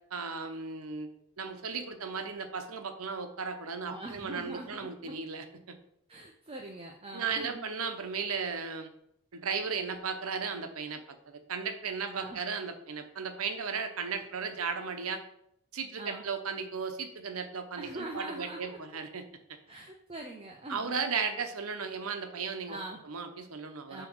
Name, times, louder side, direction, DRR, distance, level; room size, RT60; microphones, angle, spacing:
voice 1, 0.1-1.1 1.4-5.8 7.1-8.9 9.3-11.0 11.3-15.2 15.7-19.2 20.7-22.8 23.0-24.1, right 5 dB, 80° right, 7 dB, 0.9 m, -35 dB
voice 2, 3.8-5.2 6.1-7.7 12.1-12.4 14.1-14.2 16.0-16.2 17.8-19.0 19.7-21.0 22.7-23.0 23.9-24.1, right 2 dB, 25° right, 1 dB, 0.6 m, -43 dB
7.6 x 3.0 x 6.1 m, 0.74 s
head